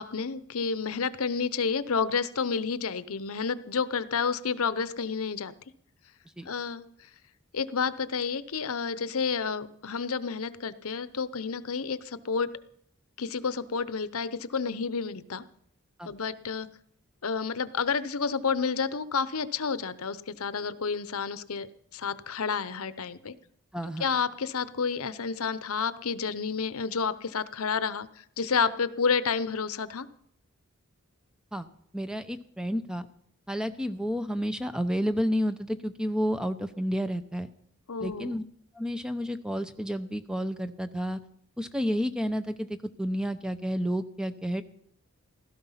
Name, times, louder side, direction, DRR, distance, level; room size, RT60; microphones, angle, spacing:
voice 1, 0.0-5.5 6.4-6.8 7.5-12.5 13.2-15.4 16.0-16.7 17.2-21.7 21.9-23.3 24.0-30.1 37.9-38.3, left 5 dB, 80° left, 15 dB, 0.8 m, -30 dB
voice 2, 23.7-24.1 31.5-31.7 31.9-33.1 33.5-37.5 38.0-38.4 38.8-41.2 41.6-44.6, equal, 5° right, 10 dB, 0.7 m, -30 dB
16.0 x 13.5 x 5.7 m, 0.66 s
head